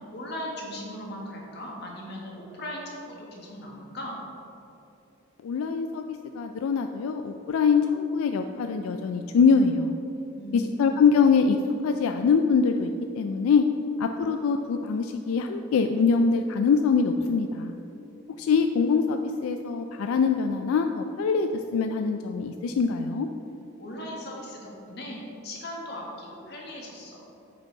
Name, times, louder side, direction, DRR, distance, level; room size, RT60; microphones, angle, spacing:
voice 1, 0.1-4.2 10.4-10.9 23.8-27.3, left 1 dB, 50° left, -2 dB, 1.4 m, -38 dB
voice 2, 5.4-6.0 6.3-10.0 10.5-11.6 11.8-12.9 13.1-13.6 14.0-17.8 18.4-23.3, left 5 dB, 85° left, 6 dB, 0.3 m, -23 dB
7.6 x 5.1 x 4.6 m, 2.9 s
head